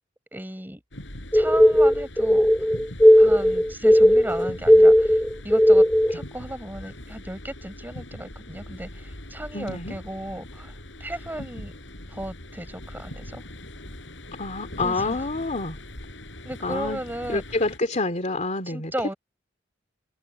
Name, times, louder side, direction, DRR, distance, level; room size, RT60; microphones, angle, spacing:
voice 1, 0.3-0.8 1.3-2.5 3.1-5.8 6.1-11.7 12.1-13.4 14.8-15.2 16.4-17.4 18.6-19.1, right 1 dB, 10° right, 4.9 m, -35 dB
sound 1, 0.9-17.8, left 1 dB, 70° left, 7.1 m, -41 dB
sound 2, 1.3-6.2, equal, 5° left, 3.2 m, -16 dB
voice 2, 9.5-9.9 14.4-15.8 16.6-17.0 17.3-18.9, left 2 dB, 40° left, 2.8 m, -27 dB
head